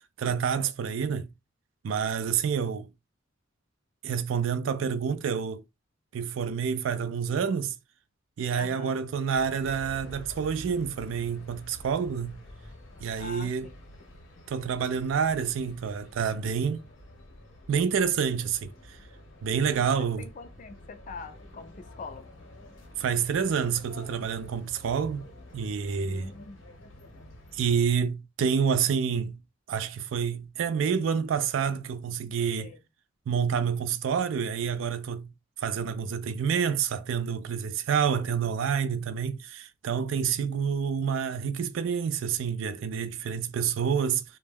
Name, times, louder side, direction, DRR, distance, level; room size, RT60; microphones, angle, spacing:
voice 1, 0.2-1.3 1.8-2.9 4.0-5.6 6.1-7.7 8.4-12.4 13.0-13.7 14.5-16.8 17.7-18.7 19.4-20.3 23.0-25.2 25.5-26.3 27.5-29.4 29.7-32.7 33.3-35.3 35.6-44.2, right 7 dB, 80° right, 0.3 m, -28 dB
voice 2, 8.6-9.0 13.2-13.8 19.7-22.3 26.0-26.6 32.6-32.8, left 4 dB, 40° left, 0.4 m, -44 dB
sound 1, 9.3-27.9, left 1 dB, 75° left, 0.8 m, -49 dB
2.2 x 2.0 x 3.3 m
head